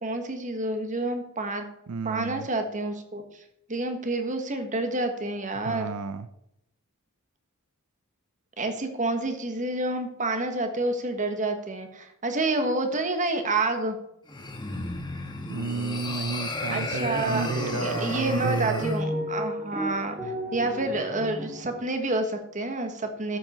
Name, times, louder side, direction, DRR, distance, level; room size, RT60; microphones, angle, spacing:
voice 1, 0.0-1.6 2.0-3.2 3.7-5.9 8.6-14.0 16.7-17.5 17.7-23.4, right 2 dB, 35° right, 6 dB, 1.5 m, -29 dB
voice 2, 1.9-2.5 5.6-6.3 15.5-18.9, right 4 dB, 85° right, 12 dB, 0.5 m, -31 dB
sound 1, 14.3-19.0, left 2 dB, 20° left, 1.6 m, -34 dB
sound 2, 15.1-15.3 15.5-16.9 17.3-21.8, equal, ahead, 2.1 m, -35 dB
12.5 x 7.6 x 4.3 m, 0.81 s
head